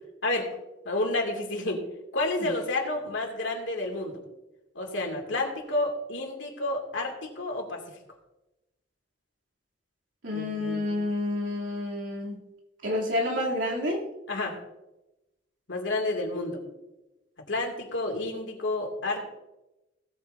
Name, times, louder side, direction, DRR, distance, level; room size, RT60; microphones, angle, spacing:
voice 1, 0.9-1.8 2.1-4.1 4.8-7.8 10.3-11.0 14.3-14.6 15.7-16.6 17.5-19.2, left 2 dB, 85° left, 1 dB, 2.4 m, -30 dB
voice 2, 10.2-12.4 12.8-14.0, left 1 dB, 80° right, -3 dB, 2.9 m, -29 dB
17.5 x 8.8 x 2.7 m, 0.98 s
head